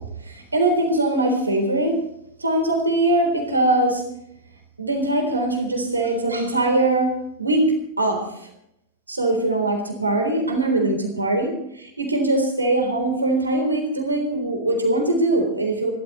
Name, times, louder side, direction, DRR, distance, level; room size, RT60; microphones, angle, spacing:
voice 1, 0.2-2.0 2.4-4.0 4.8-7.1 7.4-8.5 9.1-15.9, right 2 dB, 80° right, 5 dB, 3.7 m, -22 dB
27.0 x 13.0 x 3.2 m, 0.76 s
figure-of-eight pair, 90°, 0 cm